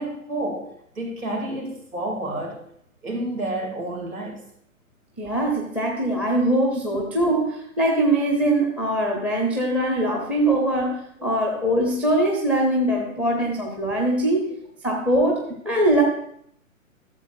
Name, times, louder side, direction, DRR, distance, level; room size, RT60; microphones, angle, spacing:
voice 1, 0.0-2.6 3.0-4.4 10.2-10.3, right 1 dB, 90° right, 0 dB, 3.0 m, -30 dB
voice 2, 5.2-14.5 14.8-16.0, right 1 dB, 5° right, -2 dB, 0.6 m, -22 dB
12.5 x 7.4 x 2.6 m, 0.70 s
figure-of-eight pair, 130°, 42 cm